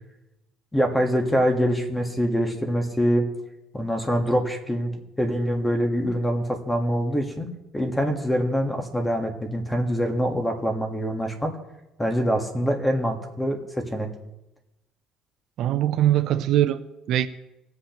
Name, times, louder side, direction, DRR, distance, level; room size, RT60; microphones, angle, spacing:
voice 1, 0.7-3.2 3.7-4.9 5.2-7.5 7.7-11.5 12.0-14.1, equal, 10° left, 4 dB, 1.4 m, -24 dB
voice 2, 15.6-17.3, right 12 dB, 60° right, 11 dB, 0.5 m, -22 dB
19.5 x 8.0 x 2.9 m, 0.95 s
cardioid pair, 150°, 0 cm